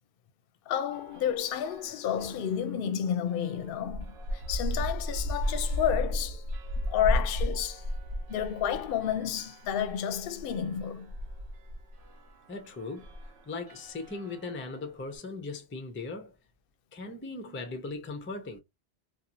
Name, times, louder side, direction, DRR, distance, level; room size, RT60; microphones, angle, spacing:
voice 1, 0.7-6.4 6.9-7.8 8.3-11.1, left 9 dB, 65° left, 0.7 m, -31 dB
sound 1, 0.9-2.8 3.3-14.8, left 1 dB, 75° right, 0.9 m, -35 dB
voice 2, 12.5-13.1 13.5-16.3 16.9-18.6, left 3 dB, 20° left, 0.3 m, -38 dB
2.6 x 2.4 x 2.7 m
omnidirectional pair, 1.1 m